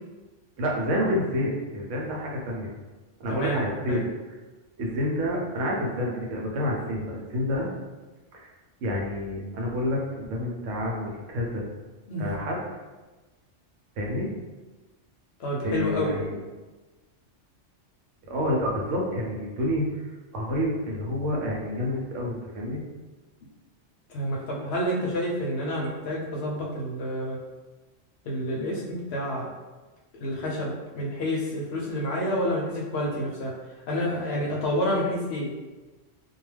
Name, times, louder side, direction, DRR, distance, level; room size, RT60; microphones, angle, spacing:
voice 1, 0.6-2.7 3.2-4.1 4.8-7.7 8.3-8.5 8.8-11.7 12.2-12.6 14.0-14.3 15.6-16.4 18.3-22.8, left 1 dB, 80° right, -2 dB, 1.0 m, -28 dB
voice 2, 3.3-4.0 12.1-12.3 15.4-16.2 24.1-27.4 28.3-29.5 30.2-33.5 33.9-35.5, equal, 65° left, -2 dB, 0.8 m, -29 dB
2.3 x 2.2 x 3.2 m, 1.2 s
omnidirectional pair, 1.3 m